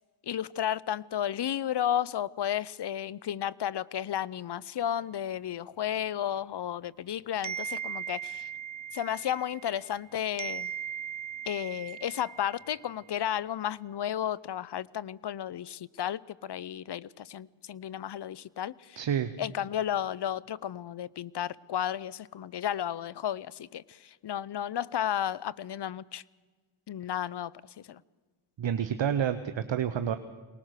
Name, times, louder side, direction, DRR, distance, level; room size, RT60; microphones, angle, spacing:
voice 1, 0.3-8.5 8.9-10.7 11.5-19.0 19.4-26.2 26.9-28.0, left 10 dB, 55° left, 0.7 m, -33 dB
sound 1, 7.4-10.0 10.4-12.9, right 8 dB, 35° right, 0.7 m, -39 dB
voice 2, 19.0-19.3 28.6-30.2, right 8 dB, 60° right, 1.1 m, -29 dB
23.0 x 19.5 x 6.6 m
cardioid pair, 65°, 50 cm